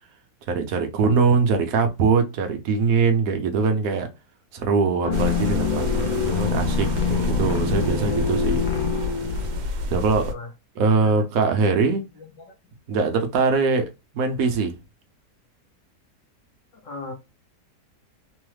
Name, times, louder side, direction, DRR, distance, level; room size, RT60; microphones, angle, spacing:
voice 1, 0.5-4.1 4.5-8.6 9.9-10.3 10.8-12.0 12.9-13.9 14.1-14.7, right 4 dB, 65° right, 1.0 m, -22 dB
sound 1, 5.0-9.6, left 5 dB, 85° left, 0.4 m, -26 dB
sound 2, 5.1-10.3, left 2 dB, 85° right, 1.3 m, -28 dB
voice 2, 10.2-10.5 11.0-11.1 12.1-12.5 16.8-17.1, left 2 dB, 65° left, 0.8 m, -38 dB
3.1 x 2.0 x 3.1 m
omnidirectional pair, 1.8 m